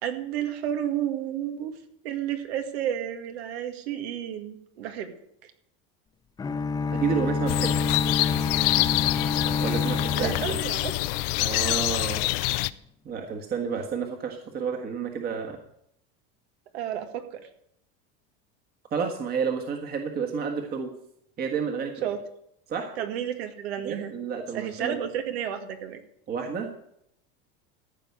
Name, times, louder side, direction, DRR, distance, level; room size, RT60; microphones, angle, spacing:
voice 1, 0.0-1.7 2.0-5.1 5.4-5.5 10.1-10.9 16.7-17.5 22.0-22.2 23.0-24.1 24.5-26.0, right 10 dB, 90° right, 7 dB, 2.0 m, -31 dB
sound 1, 6.4-11.4, left 5 dB, 15° left, 0.5 m, -28 dB
voice 2, 6.9-7.7 9.6-10.3 11.4-12.3 13.0-15.6 18.9-20.9 21.4-22.1 22.7-22.9 23.8-25.0 26.3-26.7, right 6 dB, 30° right, 3 dB, 1.5 m, -30 dB
amb - outdoor nature birds, 7.5-12.7, left 19 dB, 65° left, 0.6 m, -26 dB
14.5 x 5.3 x 8.3 m, 0.73 s
supercardioid pair, 140°, 30 cm